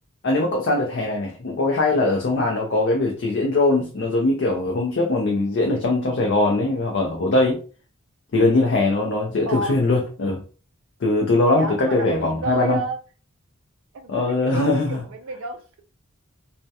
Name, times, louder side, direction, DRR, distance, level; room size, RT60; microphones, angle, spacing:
voice 1, 0.2-7.6 8.3-10.4 11.0-12.8 14.1-15.0, left 2 dB, 55° left, 0 dB, 0.4 m, -21 dB
voice 2, 9.5-9.8 11.5-13.0 13.9-15.8, right 3 dB, 70° right, 6 dB, 0.3 m, -31 dB
2.7 x 2.1 x 2.2 m, 0.37 s
head